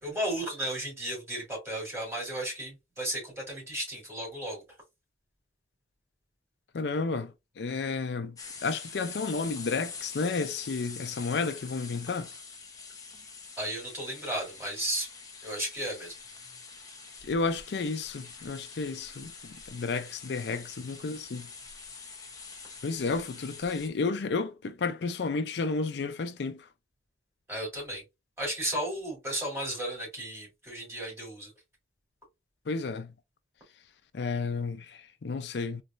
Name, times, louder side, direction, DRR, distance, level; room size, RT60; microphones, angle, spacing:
voice 1, 0.0-4.6 13.6-15.1 15.4-16.1 27.5-28.0 28.4-31.5, right 1 dB, 15° right, 2.8 m, -34 dB
voice 2, 6.7-8.4 8.6-12.3 17.2-21.5 22.8-26.7 32.7-33.1 34.1-35.8, left 4 dB, 75° left, 0.4 m, -32 dB
sound 1, 8.4-23.9, left 5 dB, 20° left, 0.8 m, -45 dB
3.9 x 3.4 x 2.5 m
head